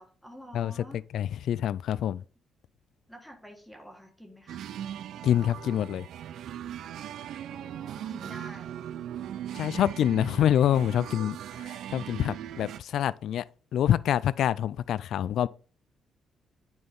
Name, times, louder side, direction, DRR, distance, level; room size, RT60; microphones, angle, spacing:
voice 1, 0.0-1.0 3.1-4.7 7.5-8.8, equal, ahead, 1.6 m, -48 dB
voice 2, 1.1-2.2 5.2-6.1 9.5-13.4 13.7-15.5, left 10 dB, 75° left, 0.3 m, -26 dB
sound 1, 4.5-12.8, right 10 dB, 75° right, 0.3 m, -39 dB
9.6 x 4.4 x 3.6 m
cardioid pair, 90°, 0 cm